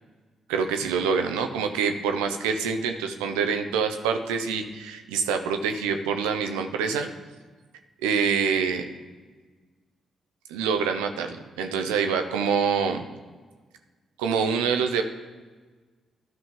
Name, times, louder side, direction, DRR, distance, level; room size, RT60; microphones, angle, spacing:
voice 1, 0.5-7.1 8.0-8.8 10.5-13.0 14.2-15.0, right 6 dB, 80° right, 6 dB, 0.7 m, -26 dB
12.5 x 5.1 x 3.8 m, 1.4 s
hypercardioid pair, 40°, 0 cm